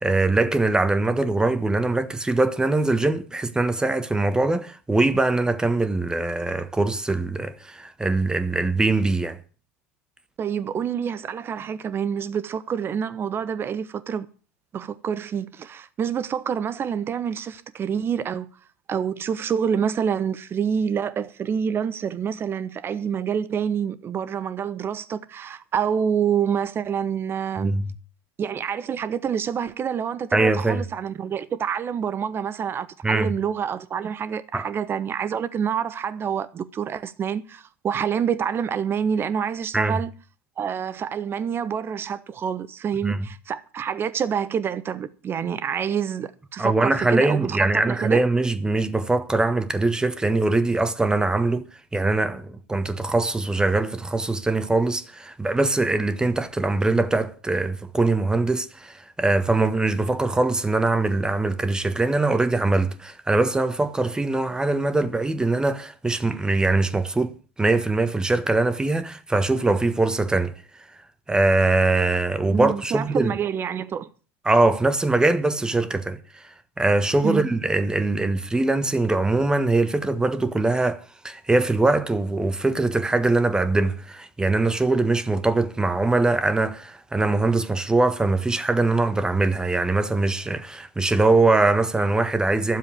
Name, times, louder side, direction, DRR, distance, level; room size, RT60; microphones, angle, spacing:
voice 1, 0.0-9.4 27.6-27.9 30.3-30.8 33.0-33.3 34.5-34.7 39.7-40.0 43.0-43.3 46.6-51.6 51.9-70.5 71.3-73.3 74.4-92.8, right 2 dB, 10° right, 1.5 m, -22 dB
voice 2, 10.4-14.3 14.7-18.5 18.9-27.8 28.4-40.1 40.6-48.2 72.5-74.1 77.2-77.4, right 7 dB, 30° right, 1.1 m, -27 dB
12.5 x 7.4 x 8.7 m
hypercardioid pair, 80°, 7 cm